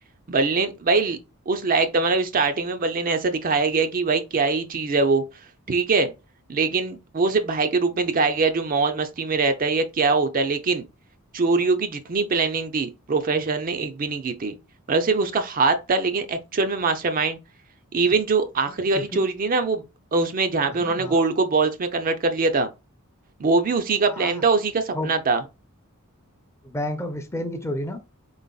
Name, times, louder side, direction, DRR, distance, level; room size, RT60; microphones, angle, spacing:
voice 1, 0.3-1.2 1.5-5.2 5.7-6.1 6.5-10.9 11.3-14.5 14.9-17.4 17.9-19.9 20.1-22.7 23.4-25.4, right 4 dB, 40° right, 0.5 m, -22 dB
voice 2, 20.7-21.2 24.1-24.4 24.9-25.1 26.6-28.0, left 1 dB, 10° left, 0.5 m, -31 dB
3.9 x 3.8 x 2.3 m
head